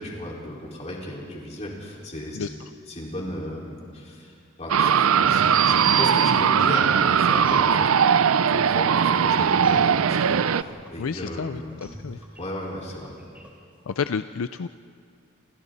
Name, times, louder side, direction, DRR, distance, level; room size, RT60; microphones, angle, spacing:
voice 1, 0.0-2.5 2.9-7.9 8.5-11.7 12.4-13.1, left 1 dB, 35° left, -3 dB, 4.8 m, -35 dB
sound 1, 4.7-10.6, right 7 dB, 80° right, 0.5 m, -19 dB
sound 2, 5.3-14.0, equal, 10° right, 4.2 m, -47 dB
voice 2, 11.0-12.2 13.9-14.7, left 6 dB, 75° left, 11 dB, 0.5 m, -30 dB
29.0 x 27.5 x 4.1 m, 2.2 s
head